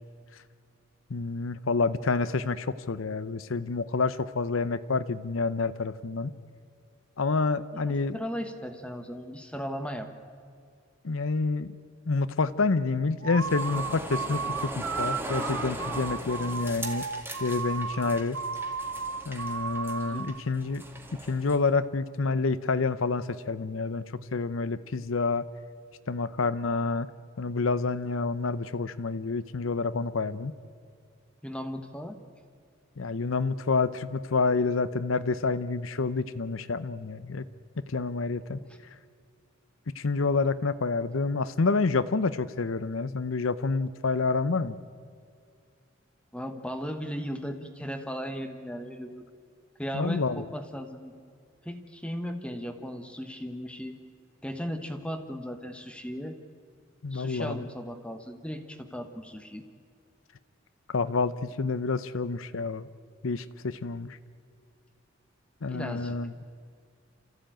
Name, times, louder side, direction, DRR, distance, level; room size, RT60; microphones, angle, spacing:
voice 1, 1.1-6.3 7.2-8.2 11.0-11.7 12.1-17.0 17.4-18.4 19.3-20.8 21.3-25.4 26.1-27.1 27.4-30.5 33.0-37.4 37.9-38.6 40.0-44.8 49.9-50.4 57.0-57.6 60.9-62.9 63.2-64.1 65.6-66.3, left 4 dB, 85° left, 14 dB, 0.7 m, -28 dB
voice 2, 7.7-10.1 20.0-20.4 31.4-32.2 38.7-38.8 46.3-49.2 49.8-51.1 51.6-54.0 54.4-56.3 57.1-59.6 65.7-66.2, equal, 5° left, 7 dB, 1.1 m, -36 dB
sound 1, 13.2-20.4, right 5 dB, 75° right, 0.8 m, -34 dB
sound 2, 13.4-21.6, right 1 dB, 10° right, 2.1 m, -39 dB
28.0 x 14.5 x 9.0 m, 2.3 s
head